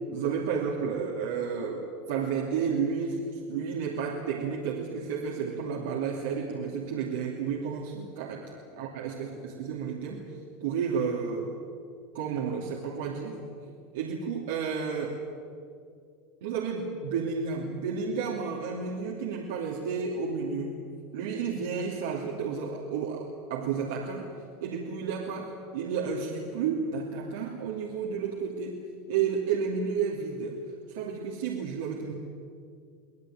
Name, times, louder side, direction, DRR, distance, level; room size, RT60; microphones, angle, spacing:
voice 1, 0.1-10.2 10.6-11.5 12.1-13.4 13.9-15.2 16.4-20.8 21.1-24.3 24.6-28.8 29.1-30.6 30.9-32.1, right 6 dB, 75° right, -2 dB, 2.8 m, -31 dB
24.5 x 18.0 x 9.1 m, 2.3 s
hypercardioid pair, 95°, 0 cm